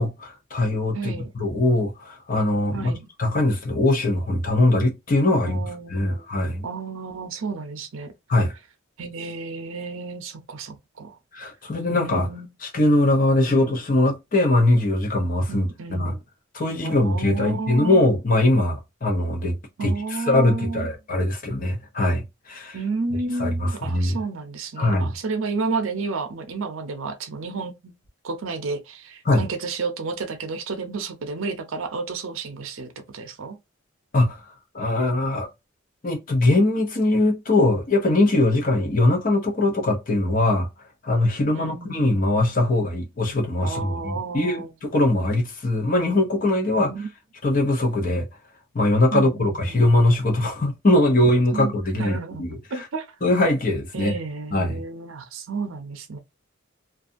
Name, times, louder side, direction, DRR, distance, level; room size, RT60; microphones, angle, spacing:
voice 1, 0.0-5.6 5.9-6.6 8.3-8.5 11.3-12.3 12.6-16.1 16.5-22.8 23.4-24.2 24.8-25.1 29.2-29.4 34.1-34.4 34.7-35.5 36.0-40.7 41.0-46.9 47.4-48.3 48.7-52.8 53.2-54.1 54.5-54.8, left 2 dB, 40° left, 0.7 m, -21 dB
voice 2, 0.9-1.3 2.7-3.1 5.4-6.2 6.6-8.1 9.0-11.2 11.9-12.5 13.5-13.8 15.5-16.2 16.8-18.0 19.8-20.9 22.7-27.9 28.2-33.6 41.5-42.2 43.6-44.7 46.7-47.1 49.1-49.9 51.5-51.7 52.0-53.1 53.9-56.2, right 4 dB, 70° right, 0.6 m, -31 dB
2.6 x 2.3 x 2.5 m
head